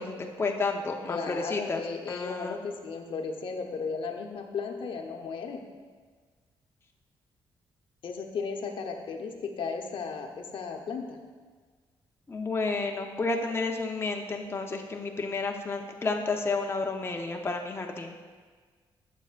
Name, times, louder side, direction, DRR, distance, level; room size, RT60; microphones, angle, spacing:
voice 1, 0.0-1.8 2.1-2.6 12.3-18.1, left 3 dB, 25° left, 2 dB, 0.8 m, -31 dB
voice 2, 1.1-5.6 8.0-11.2, left 5 dB, 65° left, 3 dB, 0.9 m, -35 dB
11.5 x 7.3 x 2.5 m, 1.5 s
cardioid pair, 80°, 9 cm